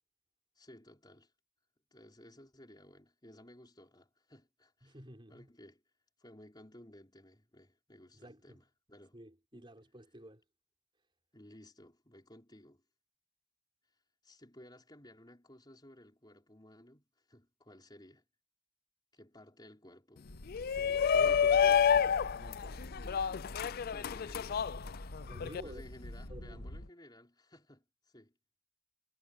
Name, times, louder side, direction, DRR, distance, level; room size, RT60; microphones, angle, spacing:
voice 1, 0.5-1.3 1.9-4.9 5.3-5.8 6.2-9.2 9.5-9.7 11.3-12.8 14.2-18.2 19.1-20.3 21.7-22.1 23.9-24.7 25.6-28.3, left 1 dB, 20° left, 4.8 m, -57 dB
voice 2, 4.8-5.5 8.1-8.6 9.1-10.4 20.7-22.8 25.2-25.8 26.3-26.7, right 1 dB, 25° right, 5.1 m, -51 dB
sound 1, 20.2-26.9, left 1 dB, 80° left, 2.5 m, -47 dB
Shout, 20.5-25.6, left 7 dB, 45° left, 0.4 m, -29 dB
head